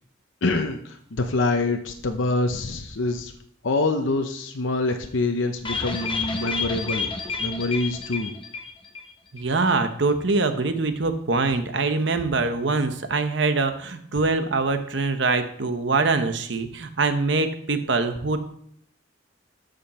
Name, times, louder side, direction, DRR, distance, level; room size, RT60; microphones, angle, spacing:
voice 1, 0.4-3.3 3.6-7.1 7.4-8.3, left 2 dB, 70° left, 5 dB, 0.7 m, -25 dB
sound 1, 5.7-9.1 9.4-9.5 9.8-9.9, left 4 dB, 25° left, 1.0 m, -30 dB
voice 2, 9.3-18.4, right 3 dB, 60° right, 8 dB, 0.9 m, -23 dB
13.0 x 5.2 x 4.2 m, 0.66 s
head